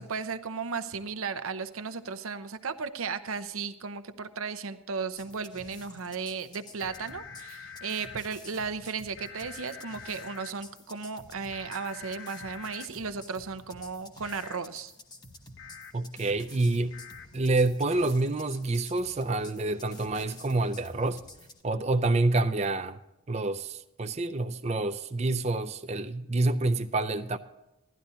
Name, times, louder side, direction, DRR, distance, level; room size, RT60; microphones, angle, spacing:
voice 1, 0.0-14.9, right 5 dB, 80° right, 0.8 m, -35 dB
sound 1, 5.2-21.6, left 2 dB, 20° left, 0.9 m, -51 dB
sound 2, 6.8-8.2 9.1-10.5 11.5-12.9 14.2-14.6 15.6-15.9 16.9-17.3, left 7 dB, 65° left, 1.0 m, -45 dB
voice 2, 15.9-17.0 17.3-21.2 21.6-23.0 23.3-27.4, right 2 dB, 30° right, 0.5 m, -27 dB
17.0 x 12.0 x 2.8 m
head